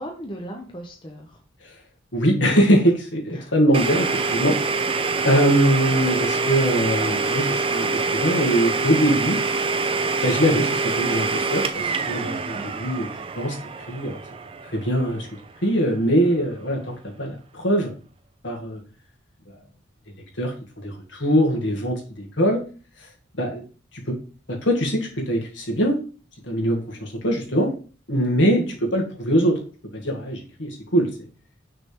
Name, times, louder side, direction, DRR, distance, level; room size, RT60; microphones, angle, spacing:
voice 1, 0.0-1.4 3.3-3.5 12.5-12.7 28.5-28.8, right 1 dB, 25° left, 1 dB, 0.8 m, -36 dB
voice 2, 2.1-4.6 5.2-9.4 10.2-13.1 13.4-13.6 13.9-14.2 14.7-15.3 15.6-17.9 18.4-18.8 20.4-20.5 20.8-22.6 23.4-23.6 24.1-24.2 24.5-26.0 26.4-27.7 28.1-29.6 29.9-31.1, equal, 65° left, 0 dB, 1.9 m, -22 dB
Domestic sounds home sounds, 3.7-15.4, right 4 dB, 30° right, 0.4 m, -25 dB
6.1 x 3.4 x 4.5 m, 0.37 s
head